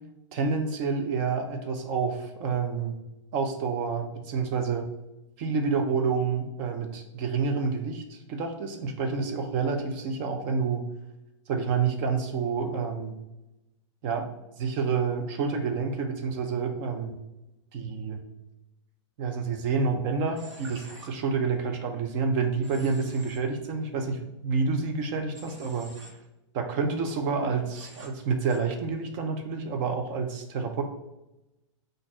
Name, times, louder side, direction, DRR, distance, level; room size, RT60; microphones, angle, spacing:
voice 1, 0.3-3.0 3.3-4.9 5.4-10.8 11.5-13.2 14.0-14.3 14.6-17.2 17.7-18.2 19.2-25.9 26.5-30.8, right 5 dB, 40° right, 5 dB, 0.7 m, -28 dB
Human voice / Train, 20.4-21.1 22.6-23.4 25.3-26.1 27.7-28.1 28.5-28.6, right 2 dB, 75° right, 1.3 m, -47 dB
4.2 x 2.6 x 4.4 m, 0.97 s
supercardioid pair, 150°, 16 cm